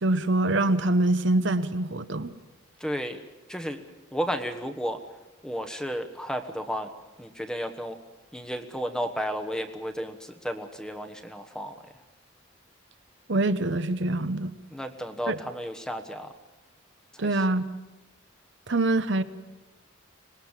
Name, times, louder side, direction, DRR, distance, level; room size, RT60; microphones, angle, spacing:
voice 1, 0.0-2.3 13.3-14.5 15.3-15.4 17.2-17.6 18.7-19.2, right 2 dB, 60° right, 11 dB, 0.9 m, -24 dB
voice 2, 2.8-3.2 3.5-3.8 4.1-5.0 5.4-6.9 7.2-8.0 8.3-11.7 14.7-16.3, equal, 5° left, 6 dB, 1.3 m, -32 dB
25.0 x 20.0 x 7.4 m, 1.1 s
head